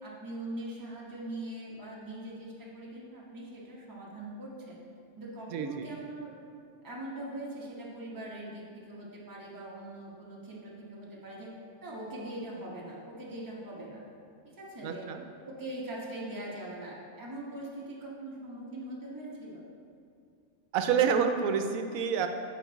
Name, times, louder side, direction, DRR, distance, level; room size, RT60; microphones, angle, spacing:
voice 1, 0.0-4.8 5.2-6.3 6.8-11.5 11.8-14.0 14.4-15.1 15.4-19.6, right 1 dB, 15° right, -5 dB, 1.1 m, -41 dB
voice 2, 5.5-5.9 14.8-15.2 20.7-22.3, right 7 dB, 80° right, 6 dB, 1.0 m, -28 dB
8.1 x 5.2 x 4.0 m, 2.4 s
omnidirectional pair, 1.5 m